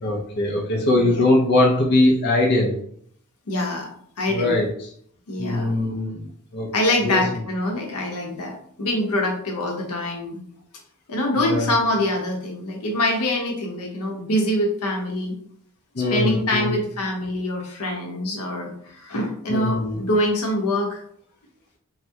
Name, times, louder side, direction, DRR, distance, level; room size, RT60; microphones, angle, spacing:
voice 1, 0.0-2.8 4.3-4.7 5.4-6.7 7.0-7.2 11.4-11.7 15.9-16.8 19.5-20.0, left 2 dB, 45° left, -1 dB, 0.5 m, -21 dB
voice 2, 3.5-3.9 4.2-4.7 5.3-5.7 6.7-10.4 11.1-15.3 16.1-21.0, left 1 dB, 85° left, 1 dB, 0.7 m, -24 dB
3.3 x 2.1 x 2.7 m, 0.64 s
head